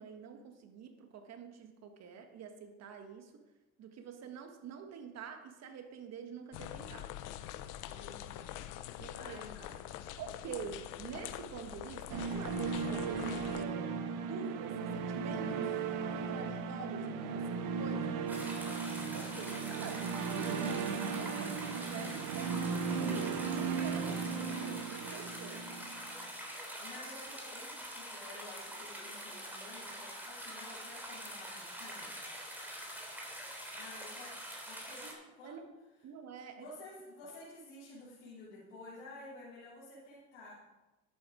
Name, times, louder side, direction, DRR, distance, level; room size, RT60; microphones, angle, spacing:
voice 1, 0.0-3.4 3.8-7.2 9.0-9.4 10.2-15.8 16.1-18.2 19.1-25.7 35.0-35.7 36.0-36.7, right 6 dB, 50° right, 6 dB, 1.7 m, -47 dB
sound 1, 6.5-13.6, left 12 dB, 65° left, 0.8 m, -45 dB
voice 2, 7.8-9.8 26.8-32.2 33.7-34.4 34.6-35.1 35.3-35.6 36.6-40.6, left 2 dB, 85° left, -8 dB, 3.2 m, -52 dB
sound 2, 12.1-26.2, right 5 dB, 65° right, 1.3 m, -36 dB
sound 3, 18.3-35.1, equal, 5° right, 3.4 m, -45 dB
11.0 x 8.8 x 5.0 m, 1.1 s
supercardioid pair, 90°, 34 cm